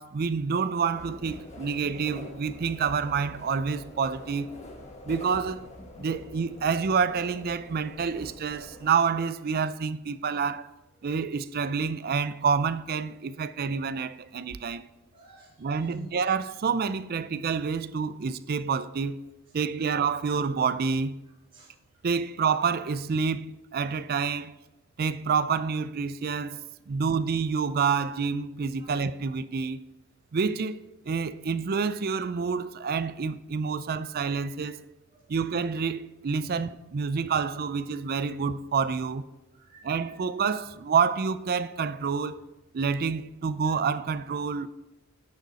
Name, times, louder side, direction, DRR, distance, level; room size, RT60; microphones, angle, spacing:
voice 1, 0.0-4.5 5.0-5.7 6.0-10.7 11.0-14.9 15.6-19.2 19.5-21.2 22.0-24.5 25.0-26.6 26.9-29.8 30.3-30.8 31.0-34.8 35.3-39.3 39.8-42.4 42.7-44.7, right 5 dB, 45° right, 0.4 m, -28 dB
sound 1, 0.9-8.9, left 1 dB, 35° left, 1.5 m, -45 dB
voice 2, 15.1-16.0 21.5-22.0 26.9-27.0 28.7-28.9 35.1-35.3 39.5-40.2, equal, 25° right, 3.2 m, -51 dB
11.0 x 6.6 x 4.1 m
head